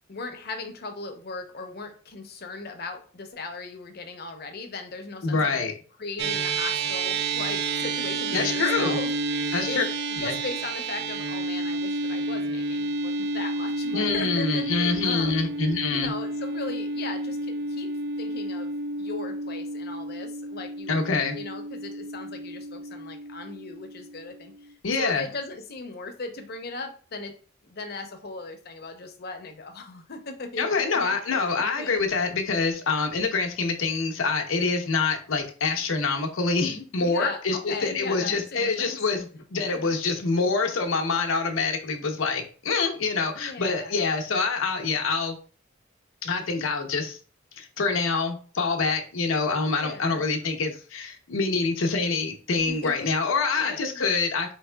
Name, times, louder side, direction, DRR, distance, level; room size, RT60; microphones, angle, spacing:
voice 1, 0.1-5.6 6.0-15.4 15.9-17.9 18.2-18.7 19.0-27.3 27.6-32.0 37.0-39.2 39.7-39.9 43.4-44.0 49.7-50.2 52.5-53.1 53.5-54.0, left 3 dB, 50° left, 6 dB, 0.7 m, -38 dB
voice 2, 5.2-5.7 8.3-9.0 9.5-9.9 10.2-10.3 13.9-16.1 20.9-21.4 24.8-25.3 30.6-45.4 46.2-47.2 47.6-54.5, left 4 dB, 85° left, 4 dB, 0.7 m, -26 dB
sound 1, 6.2-24.7, right 2 dB, 55° right, 0.4 m, -30 dB
4.7 x 3.3 x 2.2 m, 0.40 s
head